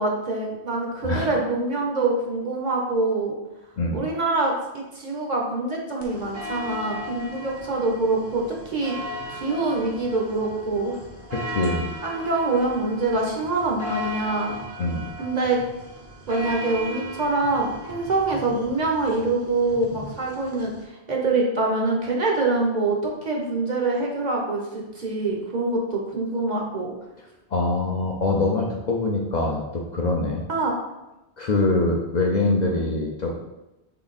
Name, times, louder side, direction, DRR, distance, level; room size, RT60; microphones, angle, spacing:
voice 1, 0.0-3.3 3.9-9.0 9.3-11.0 12.0-14.5 15.2-15.6 16.3-23.0 23.2-26.9 30.5-30.7, right 3 dB, 45° right, -1 dB, 0.8 m, -25 dB
sound 1, 6.0-20.8, equal, 20° right, 0.6 m, -37 dB
voice 2, 11.3-11.9 14.8-15.1 27.5-30.4 31.4-33.4, left 2 dB, 50° left, -1 dB, 0.6 m, -24 dB
3.8 x 3.5 x 4.0 m, 0.97 s
omnidirectional pair, 1.1 m